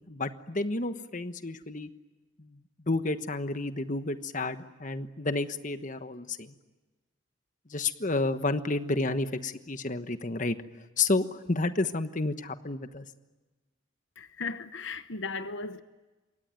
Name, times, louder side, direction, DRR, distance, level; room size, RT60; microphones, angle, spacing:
voice 1, 0.1-1.9 2.4-2.6 2.9-6.5 7.7-10.6 11.0-13.1, left 2 dB, 40° left, 1.2 m, -30 dB
voice 2, 14.2-15.8, left 4 dB, 65° left, 1.0 m, -36 dB
27.5 x 23.5 x 9.2 m
head